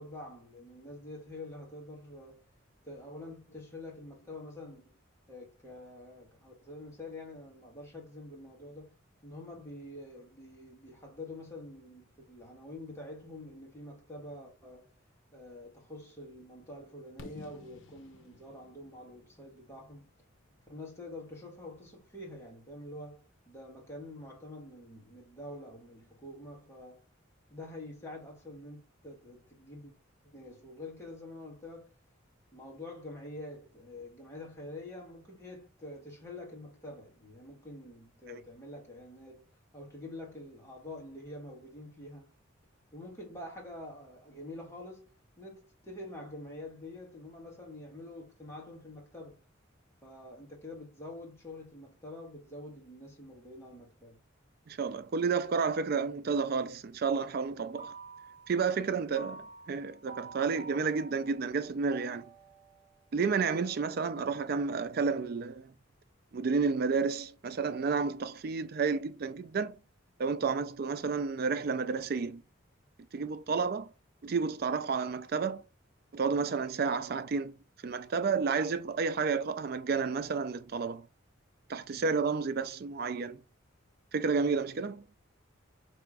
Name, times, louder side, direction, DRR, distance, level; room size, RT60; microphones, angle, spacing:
voice 1, 0.0-2.5 2.8-4.9 5.3-8.9 9.2-14.9 15.3-20.1 20.6-27.0 27.5-29.9 30.2-31.9 32.5-39.5 39.7-42.3 42.9-45.1 45.4-49.4 50.0-54.2, left 1 dB, 15° left, 1.5 m, -46 dB
Fireworks, 17.2-21.1, left 3 dB, 75° left, 0.7 m, -53 dB
voice 2, 54.7-57.9 58.5-62.2 63.1-65.7 66.3-69.8 70.2-72.4 73.1-73.9 74.2-75.6 76.1-77.5 77.8-81.0 81.7-83.4 84.1-85.0, right 5 dB, 50° right, 0.4 m, -31 dB
sound 1, 57.6-58.7 59.1-65.2, right 3 dB, 20° right, 1.1 m, -50 dB
3.4 x 3.0 x 4.7 m
head